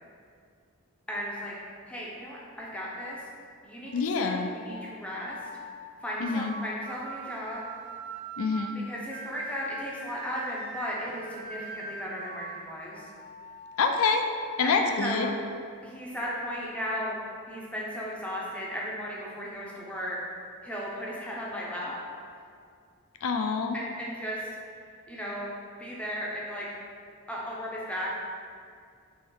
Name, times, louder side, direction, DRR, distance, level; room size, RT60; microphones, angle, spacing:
voice 1, 1.1-1.5 1.9-3.2 3.6-5.4 6.0-7.6 8.7-13.1 14.6-15.3 15.8-17.2 17.5-20.2 20.6-22.0 23.7-24.5 25.1-25.5 25.8-26.7 27.3-28.2, equal, 5° left, -5 dB, 0.6 m, -35 dB
voice 2, 3.9-4.5 6.2-6.5 8.4-8.8 13.8-14.3 14.6-15.3 23.2-23.8, left 4 dB, 65° left, 5 dB, 0.4 m, -26 dB
sound 1, 3.9-16.7, right 3 dB, 50° right, 0.6 m, -44 dB
3.7 x 3.1 x 4.6 m, 2.2 s
head